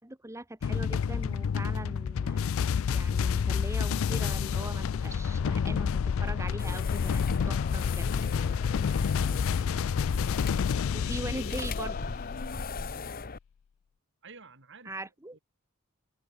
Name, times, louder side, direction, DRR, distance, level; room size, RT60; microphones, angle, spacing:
voice 1, 0.0-2.6 2.9-8.1 10.9-12.0 14.9-15.4, right 1 dB, 15° right, 1.5 m, -41 dB
sound 1, 0.6-12.8, left 6 dB, 65° left, 0.4 m, -29 dB
Computer keyboard, 6.2-6.3 6.6-6.7 7.3-8.6 9.0-11.3, left 6 dB, 80° left, 6.0 m, -62 dB
sound 2, 6.6-13.4, left 4 dB, 45° left, 0.9 m, -38 dB
voice 2, 9.1-9.5 11.1-11.4 12.7-13.2 14.2-15.4, right 3 dB, 60° right, 7.9 m, -52 dB
head